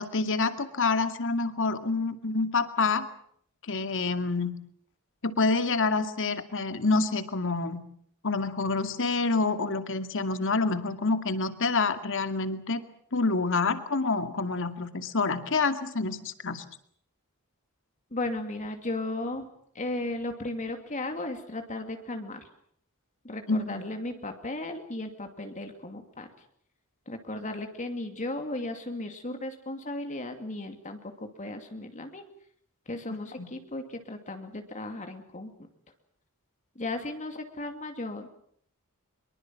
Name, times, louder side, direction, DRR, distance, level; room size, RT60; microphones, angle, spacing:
voice 1, 0.0-3.1 3.7-4.5 5.2-7.8 8.2-12.8 13.1-16.6 23.5-23.8 33.4-33.5, left 3 dB, 60° left, 9 dB, 2.3 m, -27 dB
voice 2, 18.1-19.5 19.7-22.5 23.2-26.3 27.1-32.2 32.9-35.5 36.7-38.3, left 2 dB, 35° left, 5 dB, 2.7 m, -35 dB
25.0 x 23.0 x 7.6 m, 0.63 s
head